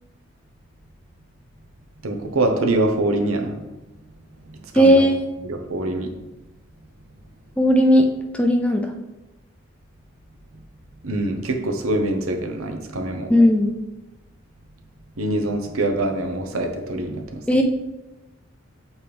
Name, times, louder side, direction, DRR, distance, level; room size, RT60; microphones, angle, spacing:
voice 1, 2.0-3.6 4.7-5.0 5.4-6.1 11.0-13.3 15.2-17.4, right 2 dB, 85° right, 4 dB, 0.8 m, -24 dB
voice 2, 4.7-5.1 7.6-8.1 8.3-8.9 13.3-13.8 17.5-17.6, equal, 5° left, 3 dB, 0.4 m, -16 dB
7.2 x 4.4 x 3.4 m, 1.0 s
head